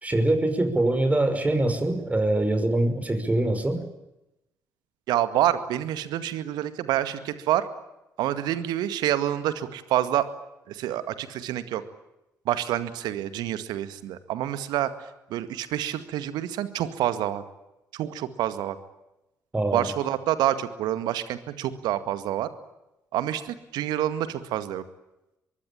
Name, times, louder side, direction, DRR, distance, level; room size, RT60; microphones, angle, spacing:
voice 1, 0.0-3.8 19.5-19.9, right 1 dB, 20° right, 9 dB, 5.8 m, -23 dB
voice 2, 5.1-7.7 8.2-10.3 10.7-11.8 12.5-14.9 15.3-17.4 17.9-18.8 19.7-22.5 23.1-24.8, right 12 dB, 65° right, 12 dB, 2.0 m, -27 dB
24.5 x 23.0 x 8.9 m, 0.91 s
figure-of-eight pair, 45°, 8 cm